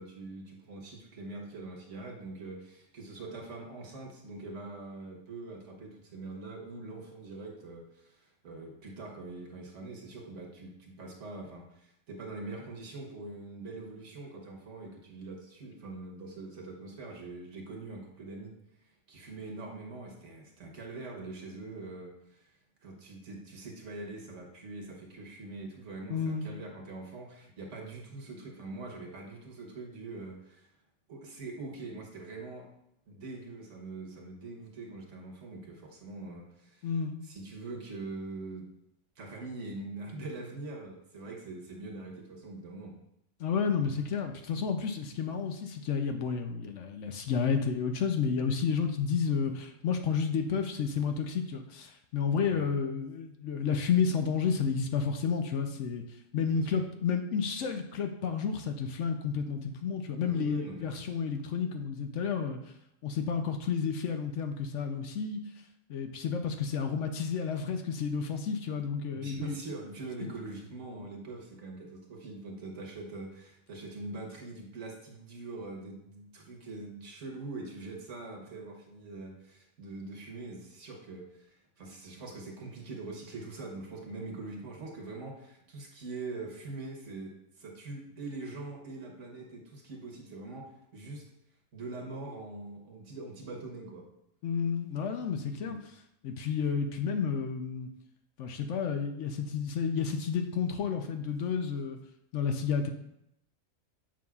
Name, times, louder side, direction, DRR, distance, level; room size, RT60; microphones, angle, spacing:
voice 1, 0.0-18.5 18.8-22.5 22.8-30.7 31.1-32.7 33.1-36.9 37.2-38.7 39.2-43.0 52.5-52.7 56.4-56.8 60.2-61.1 69.1-91.2 91.7-94.1 95.6-95.8, right 3 dB, 60° right, 0 dB, 1.4 m, -43 dB
voice 2, 26.1-26.5 36.8-37.2 43.4-62.6 63.0-65.4 65.9-69.6 70.2-70.3 94.4-95.8 96.2-97.9 98.4-102.0 102.3-102.9, left 6 dB, 70° left, 6 dB, 0.9 m, -31 dB
7.5 x 5.4 x 2.3 m, 0.79 s
omnidirectional pair, 1.4 m